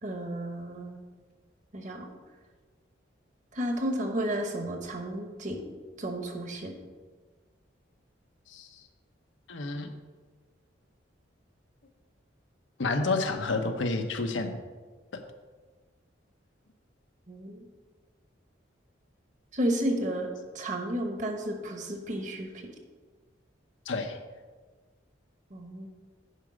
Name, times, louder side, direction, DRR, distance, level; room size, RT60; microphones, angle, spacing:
voice 1, 0.0-1.0 1.7-2.1 3.5-5.6 6.0-6.7 17.3-17.7 19.5-20.3 20.5-22.7 25.5-25.9, right 1 dB, 40° right, 4 dB, 1.0 m, -32 dB
voice 2, 9.5-9.9 12.8-14.6 15.1-15.2 23.9-24.2, left 3 dB, 80° left, 6 dB, 0.8 m, -29 dB
9.7 x 5.0 x 5.0 m, 1.4 s
head